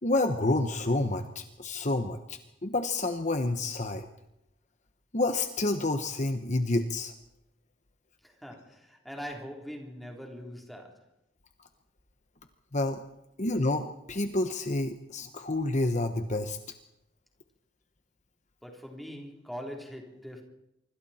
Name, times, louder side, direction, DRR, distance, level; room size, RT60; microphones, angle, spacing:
voice 1, 0.0-4.1 5.1-7.1 12.7-13.0 13.4-16.6, left 2 dB, 40° left, 1.2 m, -29 dB
voice 2, 8.2-11.0 18.6-20.4, equal, ahead, 3.7 m, -42 dB
25.5 x 25.0 x 4.4 m
head